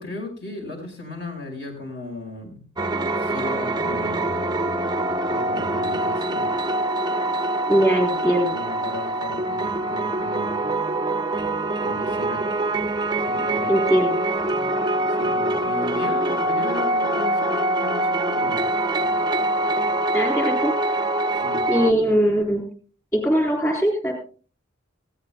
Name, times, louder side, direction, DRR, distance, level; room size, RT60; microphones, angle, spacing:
voice 1, 0.0-2.6 3.2-4.3 5.3-6.5 8.5-10.7 11.8-12.4 13.2-13.8 15.1-18.6 21.3-21.7, left 2 dB, 55° left, 2 dB, 5.0 m, -36 dB
sound 1, 2.8-21.9, right 1 dB, 20° right, 0.5 m, -24 dB
voice 2, 7.7-8.6 13.7-14.2 20.1-20.9 21.7-22.6 23.1-24.1, equal, 15° left, 1 dB, 3.6 m, -21 dB
20.0 x 15.5 x 2.3 m, 0.38 s
head